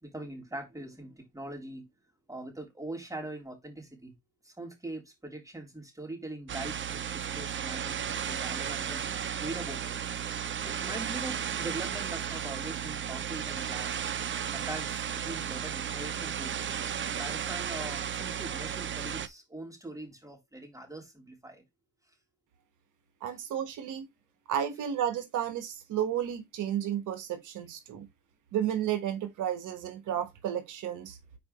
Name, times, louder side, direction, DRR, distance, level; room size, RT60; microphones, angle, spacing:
voice 1, 0.0-1.8 2.3-4.1 4.4-9.1 9.4-9.9 10.6-13.9 14.5-16.6 17.1-21.6, right 2 dB, 10° right, 3.4 m, -42 dB
sound 1, 6.5-19.3, right 8 dB, 40° right, 0.7 m, -34 dB
voice 2, 23.2-24.0 24.5-28.1 28.5-31.2, right 10 dB, 85° right, 1.3 m, -32 dB
5.0 x 4.6 x 4.9 m
cardioid pair, 90°, 30 cm